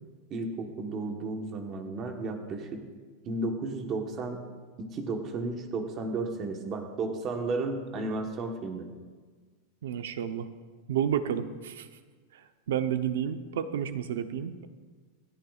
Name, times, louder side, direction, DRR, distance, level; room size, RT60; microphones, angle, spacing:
voice 1, 0.3-2.8 3.2-4.4 4.8-8.9, right 3 dB, 25° right, 4 dB, 1.2 m, -33 dB
voice 2, 9.8-10.5 10.9-11.9 12.3-14.7, right 9 dB, 90° right, 9 dB, 0.8 m, -31 dB
27.0 x 9.9 x 2.4 m, 1.5 s
supercardioid pair, 175°, 0 cm